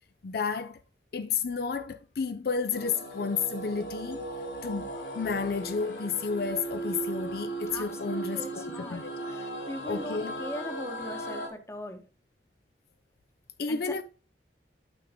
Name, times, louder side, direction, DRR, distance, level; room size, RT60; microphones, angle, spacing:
voice 1, 0.2-0.8 1.1-4.2 4.6-9.3 9.8-10.3 13.6-14.0, left 5 dB, 60° left, 0.4 m, -31 dB
sound 1, 2.7-11.5, right 2 dB, 80° left, 2.1 m, -37 dB
voice 2, 7.7-9.0 9.3-12.0 13.7-13.9, left 1 dB, 15° left, 1.0 m, -40 dB
11.5 x 4.6 x 3.6 m
head